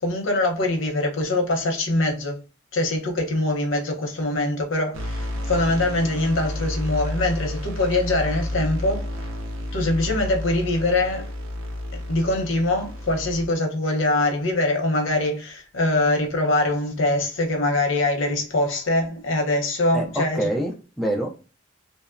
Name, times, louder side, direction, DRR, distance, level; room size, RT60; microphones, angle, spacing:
voice 1, 0.0-2.4 2.7-9.1 9.7-11.3 11.9-20.5, left 2 dB, 80° left, 0.7 m, -23 dB
sound 1, 4.9-13.5, left 1 dB, 85° right, 0.5 m, -31 dB
voice 2, 19.9-21.5, right 1 dB, ahead, 0.3 m, -27 dB
2.8 x 2.0 x 2.4 m
head